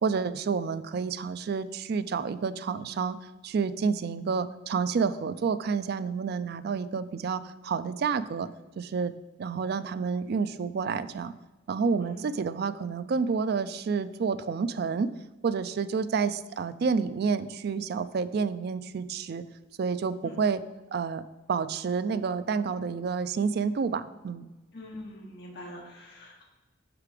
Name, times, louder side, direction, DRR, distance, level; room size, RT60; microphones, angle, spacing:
voice 1, 0.0-3.2 3.4-8.5 8.8-9.1 9.4-11.3 11.7-15.1 15.4-19.4 19.8-20.6 20.9-21.2 21.5-24.5, right 5 dB, 55° right, 13 dB, 0.3 m, -29 dB
voice 2, 12.0-12.4 20.2-20.4 24.7-26.4, left 1 dB, 55° left, -2 dB, 1.1 m, -44 dB
5.8 x 4.9 x 4.9 m, 1.1 s
head